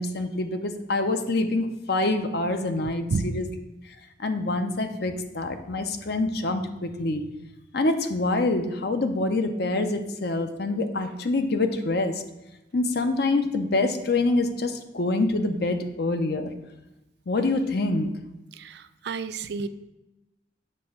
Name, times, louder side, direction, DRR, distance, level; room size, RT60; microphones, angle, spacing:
voice 1, 0.0-3.5 4.2-7.2 7.7-12.2 12.7-16.5 17.3-18.1, left 2 dB, 60° left, 7 dB, 0.7 m, -26 dB
voice 2, 18.5-19.7, right 4 dB, 65° right, 12 dB, 0.4 m, -30 dB
7.6 x 3.4 x 6.4 m, 0.95 s
head